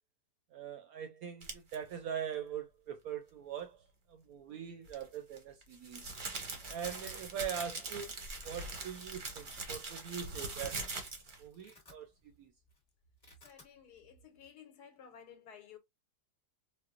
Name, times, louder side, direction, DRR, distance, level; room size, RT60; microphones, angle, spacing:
voice 1, 0.5-3.8 4.1-6.1 6.7-10.9 11.4-12.1 12.4-12.5, right 8 dB, 70° right, 0.9 m, -42 dB
sound 1, 1.4-1.7 4.8-11.4, right 3 dB, 45° right, 0.6 m, -42 dB
Domestic sounds home sounds, 6.8-7.2 7.7-8.0 8.3-8.8 9.4-9.5 9.9-10.6 11.0-11.1 11.4-12.4 12.6-12.8 13.0-13.7, left 3 dB, 25° left, 1.4 m, -59 dB
voice 2, 13.4-15.8, left 8 dB, 65° left, 1.4 m, -55 dB
4.3 x 2.1 x 2.4 m
omnidirectional pair, 1.9 m